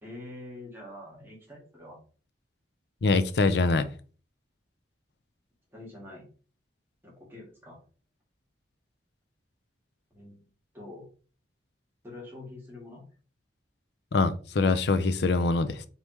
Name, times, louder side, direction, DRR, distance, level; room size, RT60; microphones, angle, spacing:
voice 1, 0.0-2.0 5.7-6.2 7.0-7.8 10.1-10.4 10.7-11.1 12.0-13.0, left 2 dB, 15° right, 1.7 m, -45 dB
voice 2, 3.0-3.9 14.1-15.8, left 3 dB, 65° left, 0.5 m, -24 dB
4.2 x 3.5 x 3.0 m
head